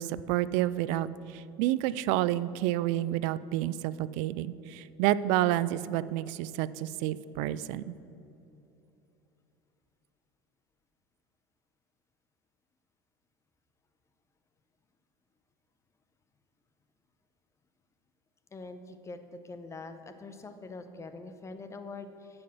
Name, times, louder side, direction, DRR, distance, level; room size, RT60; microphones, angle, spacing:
voice 1, 0.0-7.9, right 14 dB, 65° right, 17 dB, 0.4 m, -29 dB
voice 2, 18.5-22.4, left 3 dB, 20° left, 9 dB, 0.8 m, -44 dB
9.4 x 6.1 x 6.1 m, 3.0 s
supercardioid pair, 95°, 13 cm